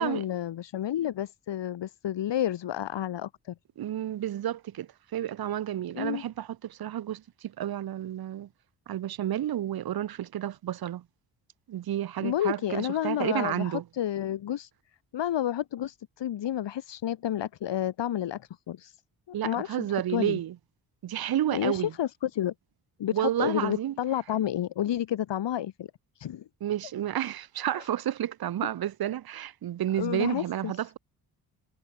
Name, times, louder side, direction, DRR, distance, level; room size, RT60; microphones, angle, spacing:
voice 1, 0.0-3.6 6.0-6.2 12.2-14.7 15.1-19.0 19.4-20.4 21.5-22.5 23.0-25.9 26.2-26.4 27.7-27.9 30.0-30.7, left 11 dB, 60° left, 2.2 m, -30 dB
voice 2, 3.8-8.5 8.9-11.0 11.7-13.8 19.3-20.6 21.0-21.9 23.1-23.9 26.6-31.0, right 11 dB, 50° right, 0.9 m, -31 dB
hypercardioid pair, 40°, 48 cm